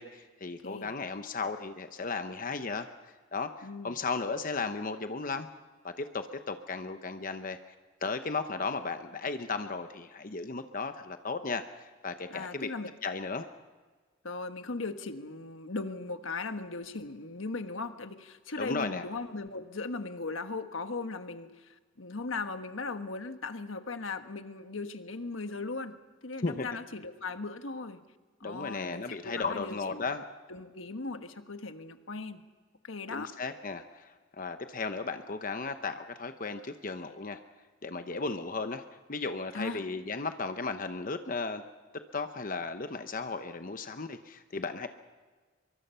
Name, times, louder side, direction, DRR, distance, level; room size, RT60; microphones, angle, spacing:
voice 1, 0.0-2.9 3.3-5.5 5.8-7.6 8.0-11.6 12.0-12.7 13.0-13.5 18.6-19.0 26.4-26.7 28.4-30.2 33.1-37.4 37.8-38.8 39.1-41.6 42.1-44.9, left 4 dB, 45° left, 8 dB, 0.9 m, -35 dB
voice 2, 0.6-0.9 3.6-4.0 12.3-12.9 14.2-25.9 26.2-28.0 28.4-30.1 30.5-32.4 32.8-33.3 39.5-39.8, left 3 dB, 80° left, 8 dB, 1.4 m, -38 dB
25.0 x 23.0 x 5.6 m, 1.4 s
head